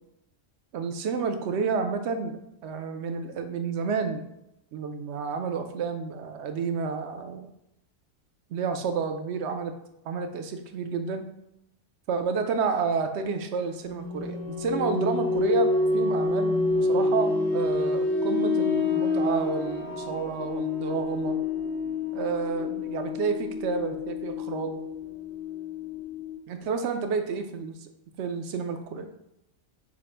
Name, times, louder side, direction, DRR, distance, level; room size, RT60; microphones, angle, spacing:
voice 1, 0.7-4.2 4.7-7.5 8.5-9.7 10.1-11.2 12.1-21.4 22.1-24.8 26.5-27.9 28.2-29.1, right 5 dB, 70° right, 7 dB, 0.8 m, -30 dB
sound 1, 13.8-26.3, left 3 dB, 90° left, 1.4 m, -28 dB
5.8 x 2.1 x 4.3 m, 0.84 s
omnidirectional pair, 1.3 m